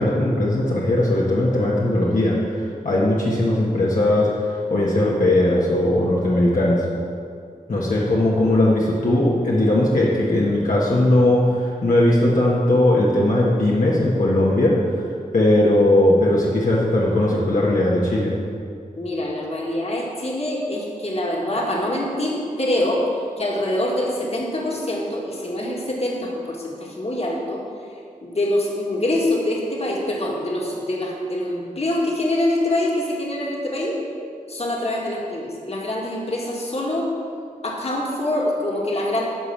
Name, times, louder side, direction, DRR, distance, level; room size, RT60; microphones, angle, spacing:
voice 1, 0.0-6.8 7.7-15.0 15.3-18.3, left 1 dB, 65° left, -6 dB, 1.4 m, -19 dB
voice 2, 19.0-23.0 23.4-27.6 28.2-34.0 34.5-37.1 37.6-39.2, left 1 dB, 45° left, -3 dB, 1.9 m, -25 dB
11.0 x 4.9 x 7.3 m, 2.3 s
wide cardioid pair, 105°, 15 cm